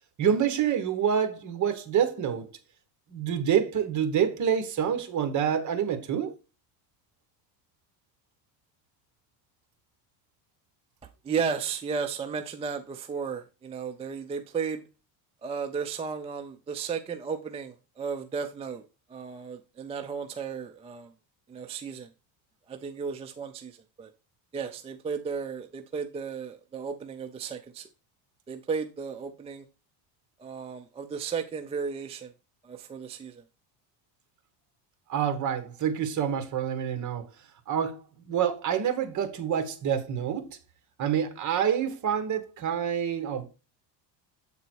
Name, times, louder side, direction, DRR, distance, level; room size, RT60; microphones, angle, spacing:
voice 1, 0.2-2.5 3.1-6.3 35.1-37.2 37.7-38.0 38.3-40.5 41.0-43.5, right 8 dB, 40° right, 1.5 m, -27 dB
voice 2, 11.2-14.8 15.4-18.8 19.1-21.1 21.5-22.1 22.7-24.1 24.5-27.9 28.5-29.6 30.4-32.3 32.6-33.4, right 6 dB, 15° right, 0.3 m, -34 dB
7.8 x 4.0 x 4.5 m
cardioid pair, 140°, 45 cm